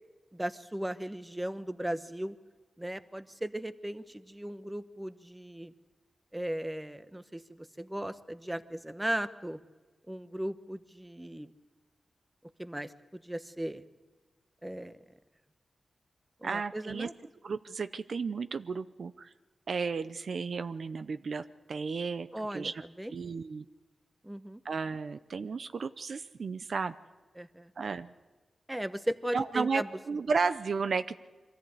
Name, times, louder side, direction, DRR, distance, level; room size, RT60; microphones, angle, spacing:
voice 1, 0.3-2.3 2.8-5.7 6.3-9.6 10.1-11.5 12.6-13.8 14.6-15.0 16.4-17.1 22.3-22.7 23.0-23.1 24.2-24.6 27.4-27.7 28.7-29.9, right 1 dB, 10° right, 11 dB, 1.0 m, -37 dB
voice 2, 16.4-17.1 17.4-19.3 19.7-22.8 23.1-23.6 24.6-26.9 27.8-28.1 29.3-31.2, right 5 dB, 70° right, 12 dB, 0.6 m, -33 dB
23.5 x 14.5 x 8.2 m, 1.3 s
cardioid pair, 65°, 0 cm